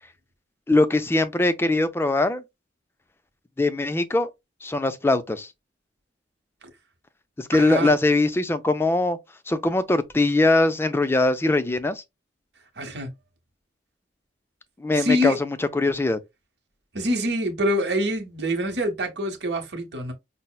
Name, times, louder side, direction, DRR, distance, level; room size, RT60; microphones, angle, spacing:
voice 1, 0.7-2.4 3.6-4.3 4.6-5.5 7.4-9.2 9.5-12.0 14.8-16.2, left 2 dB, 15° left, 0.4 m, -21 dB
voice 2, 7.5-7.9 12.8-13.1 14.9-15.4 16.9-20.1, equal, 70° right, 1.0 m, -25 dB
5.4 x 2.0 x 2.2 m
head